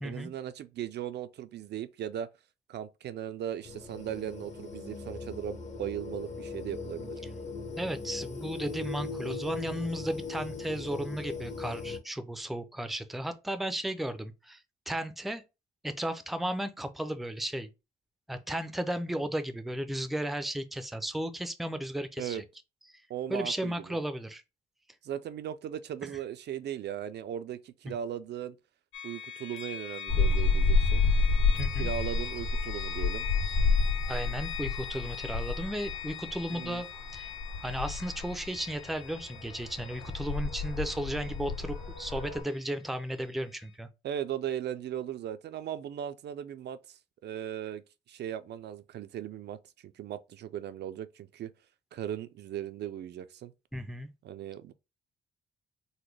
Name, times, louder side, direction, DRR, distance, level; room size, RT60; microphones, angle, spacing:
voice 1, 0.0-2.3 2.7-7.2 22.2-22.4 23.1-24.0 25.0-28.6 29.0-31.0 31.7-33.3 36.5-36.8 44.0-51.5 51.9-53.5 54.2-54.7, right 10 dB, 60° right, 0.4 m, -38 dB
sound 1, 3.6-12.0, left 4 dB, 35° left, 0.9 m, -39 dB
voice 2, 7.8-14.6 14.9-15.4 15.8-17.7 18.3-22.4 23.3-24.4 26.0-26.1 31.6-31.9 34.1-36.9 37.1-37.3 37.6-43.9 53.7-54.1, right 1 dB, ahead, 0.5 m, -34 dB
sound 2, 28.9-42.7, left 9 dB, 80° left, 0.8 m, -42 dB
sound 3, 30.1-42.4, left 3 dB, 55° left, 1.7 m, -30 dB
4.0 x 2.1 x 3.2 m
cardioid pair, 90°, 20 cm